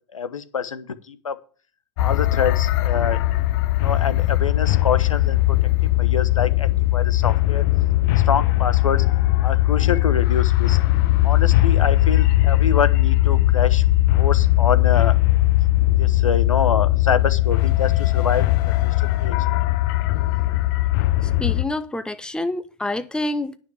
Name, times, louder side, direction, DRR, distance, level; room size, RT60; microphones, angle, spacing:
voice 1, 0.1-1.3 2.0-3.2 3.8-5.6 5.9-7.6 8.1-9.0 9.4-10.8 11.2-13.8 14.2-15.2 16.0-18.5 18.8-19.3, left 6 dB, 80° left, 1.3 m, -26 dB
sound 1, 2.0-21.6, left 16 dB, 45° left, 0.9 m, -19 dB
voice 2, 21.2-23.6, left 1 dB, 5° left, 0.8 m, -27 dB
9.8 x 6.0 x 8.0 m
hypercardioid pair, 105°, 16 cm